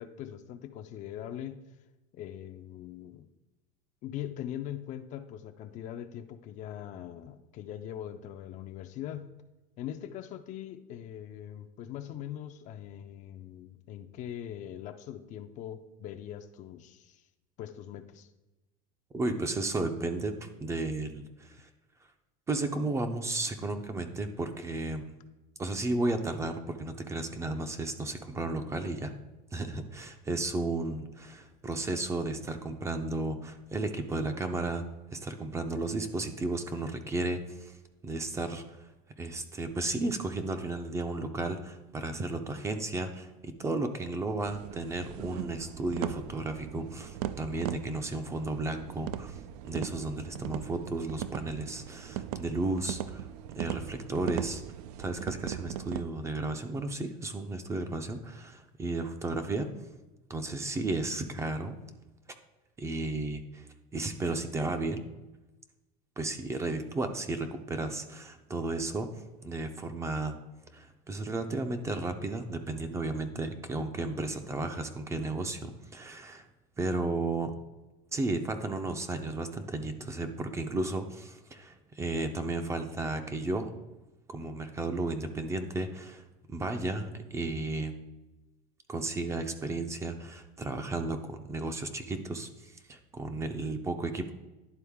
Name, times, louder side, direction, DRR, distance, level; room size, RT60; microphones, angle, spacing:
voice 1, 0.0-1.6 2.1-3.3 4.0-9.3 9.8-17.3 17.6-18.3, left 11 dB, 40° left, 8 dB, 0.4 m, -41 dB
voice 2, 19.1-21.7 22.5-25.1 25.6-29.1 29.5-34.8 35.1-37.7 38.0-38.9 39.2-49.4 49.7-53.3 53.5-54.6 55.0-59.7 60.3-61.8 62.8-65.0 66.2-70.4 70.7-76.5 76.8-77.5 78.1-83.7 84.3-87.9 88.9-94.3, right 2 dB, 15° right, 7 dB, 0.4 m, -34 dB
sound 1, 44.5-56.0, right 11 dB, 85° right, 0.4 m, -39 dB
11.0 x 3.9 x 3.5 m, 1.1 s
cardioid pair, 150°, 19 cm